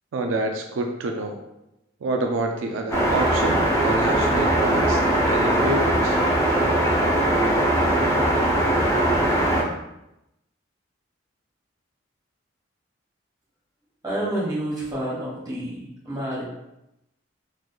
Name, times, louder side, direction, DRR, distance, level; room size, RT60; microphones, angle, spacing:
voice 1, 0.1-1.4 2.0-6.2, right 2 dB, 85° right, 3 dB, 0.4 m, -28 dB
sound 1, 2.9-9.6, right 1 dB, 15° left, 0.6 m, -20 dB
voice 2, 14.0-16.5, right 1 dB, 20° right, -7 dB, 1.2 m, -29 dB
3.8 x 3.1 x 2.3 m, 0.88 s
head